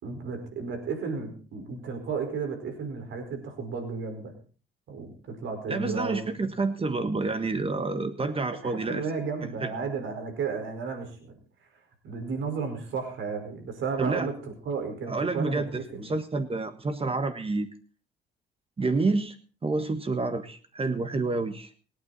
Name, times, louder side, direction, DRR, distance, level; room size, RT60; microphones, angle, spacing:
voice 1, 0.0-4.3 4.9-6.5 8.6-11.1 12.0-14.3 14.6-16.1, right 5 dB, 75° right, 5 dB, 4.9 m, -33 dB
voice 2, 5.7-9.0 9.6-9.7 14.0-14.3 15.1-17.7 18.8-19.3 19.6-21.7, right 3 dB, 30° right, 9 dB, 1.4 m, -28 dB
26.0 x 9.1 x 4.2 m, 0.39 s
cardioid pair, 90°, 20 cm